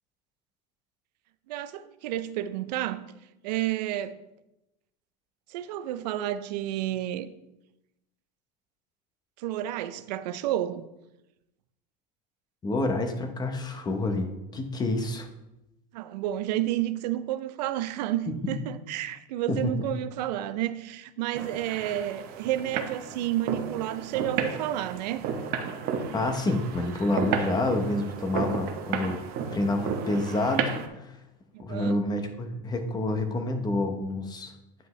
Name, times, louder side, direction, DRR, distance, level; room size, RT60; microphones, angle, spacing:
voice 1, 1.5-3.0 3.4-4.2 5.5-7.3 9.4-10.9 15.9-25.3 31.5-32.0, right 13 dB, 80° right, 0.5 m, -31 dB
voice 2, 12.6-15.3 18.3-18.6 19.5-19.7 26.1-29.2 29.5-31.1 31.6-34.5, left 2 dB, 20° left, 0.9 m, -28 dB
sound 1, 21.3-30.9, right 6 dB, 45° right, 0.9 m, -33 dB
9.6 x 5.4 x 3.1 m
supercardioid pair, 130°, 21 cm